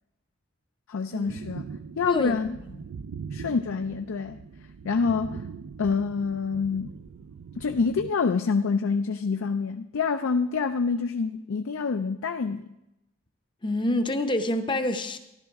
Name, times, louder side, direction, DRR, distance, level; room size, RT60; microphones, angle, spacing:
voice 1, 0.9-1.6 2.0-2.6 3.3-4.4 4.8-5.4 5.8-6.9 7.6-12.7, left 5 dB, 75° left, 7 dB, 0.4 m, -27 dB
sound 1, 1.3-8.1, right 6 dB, 80° right, 0.4 m, -41 dB
voice 2, 2.1-2.4 2.7-2.8 13.6-15.2, left 1 dB, 25° left, 8 dB, 0.6 m, -27 dB
13.5 x 11.5 x 3.5 m, 0.90 s
head